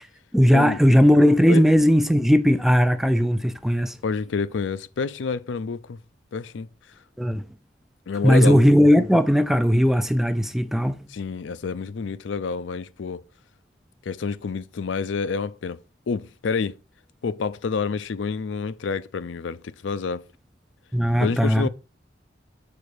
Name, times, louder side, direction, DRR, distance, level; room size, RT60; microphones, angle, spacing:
voice 1, 0.3-4.0 7.2-7.4 8.2-11.1 20.9-21.7, equal, ahead, 0.4 m, -18 dB
voice 2, 4.0-6.0 6.3-6.7 8.1-8.6 11.1-13.2 14.1-15.8 16.1-16.8 17.2-20.2 21.2-21.7, left 5 dB, 80° left, 0.5 m, -28 dB
6.8 x 4.3 x 4.8 m
head